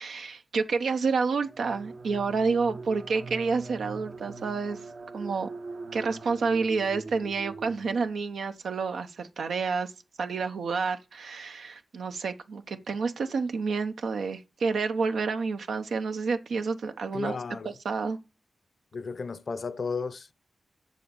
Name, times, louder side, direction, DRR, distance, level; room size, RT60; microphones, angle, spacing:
voice 1, 0.0-4.8 5.1-5.5 5.9-9.9 10.2-17.4 17.6-18.2, right 4 dB, 85° right, 0.9 m, -29 dB
sound 1, 1.4-8.3, right 3 dB, 70° right, 1.2 m, -42 dB
voice 2, 17.1-17.7 18.9-20.3, left 4 dB, 60° left, 0.7 m, -34 dB
7.6 x 6.3 x 7.0 m
cardioid pair, 65°, 0 cm